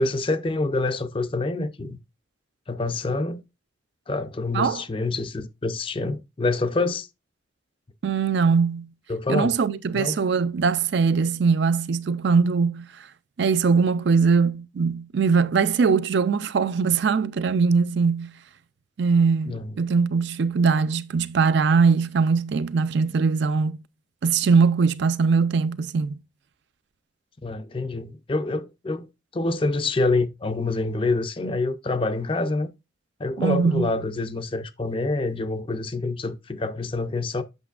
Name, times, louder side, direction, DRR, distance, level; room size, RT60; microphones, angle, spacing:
voice 1, 0.0-2.0 2.7-3.4 4.1-7.1 9.1-9.5 9.9-10.2 19.4-19.8 27.4-32.7 33.2-37.4, left 2 dB, 25° left, 0.5 m, -26 dB
voice 2, 8.0-8.9 9.3-12.9 13.4-18.3 19.0-23.8 24.2-26.2 33.4-33.9, right 5 dB, 60° right, 0.4 m, -21 dB
8.1 x 6.0 x 2.4 m
head